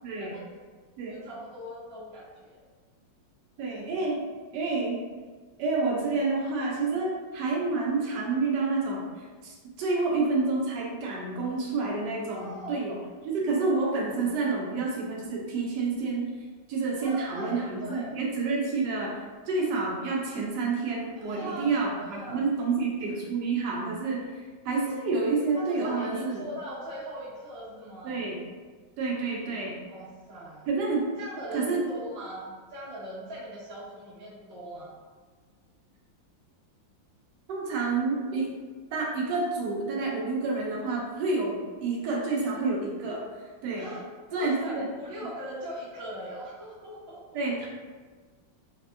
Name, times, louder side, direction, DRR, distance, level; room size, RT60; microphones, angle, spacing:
voice 1, 0.0-0.3 1.0-1.2 3.6-4.2 4.5-5.0 5.6-13.0 13.2-16.3 16.7-26.4 28.0-28.4 29.0-29.8 30.7-31.1 31.5-31.8 37.5-38.5 38.9-43.2 43.6-43.8 44.3-44.9 47.3-47.7, right 3 dB, 75° right, -2 dB, 1.1 m, -29 dB
voice 2, 1.1-2.6 12.3-12.8 17.0-18.1 21.1-22.5 25.5-28.2 29.8-30.7 31.2-35.0 43.7-44.0 44.3-47.2, right 1 dB, 35° right, -13 dB, 1.2 m, -40 dB
3.4 x 2.0 x 2.4 m, 1.5 s
omnidirectional pair, 2.0 m